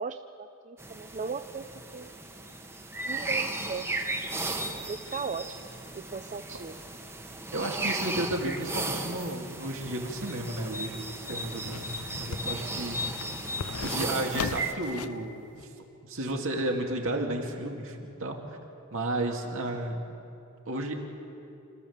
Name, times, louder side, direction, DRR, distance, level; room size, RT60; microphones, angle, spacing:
voice 1, 0.0-2.1 3.1-4.1 4.8-5.6 5.9-6.8, right 5 dB, 35° right, 7 dB, 0.5 m, -37 dB
sound 1, 0.8-14.7, right 2 dB, 10° right, 1.2 m, -35 dB
voice 2, 7.5-11.0 11.3-11.9 12.2-13.3 13.8-15.7 16.0-18.4 18.9-20.0 20.7-20.9, right 1 dB, 65° right, 1 dB, 2.4 m, -32 dB
sound 2, 10.1-15.2 15.6-15.7, left 5 dB, 90° left, 0.6 m, -39 dB
27.0 x 14.0 x 7.2 m, 2.7 s
head